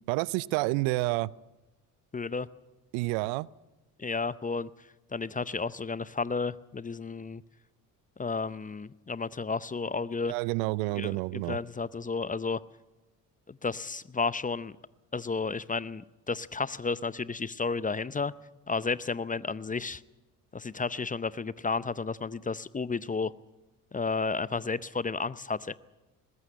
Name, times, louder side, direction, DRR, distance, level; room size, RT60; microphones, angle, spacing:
voice 1, 0.1-1.3 2.9-3.5 10.3-11.6, right 21 dB, 70° right, 23 dB, 0.6 m, -29 dB
voice 2, 2.1-2.5 4.0-4.7 5.1-7.4 8.2-10.3 10.9-12.6 13.5-14.7 15.1-18.3 18.7-20.0 20.5-23.3 23.9-25.7, left 4 dB, 15° left, 18 dB, 0.6 m, -32 dB
20.0 x 17.0 x 8.6 m, 1.1 s
hypercardioid pair, 55°, 47 cm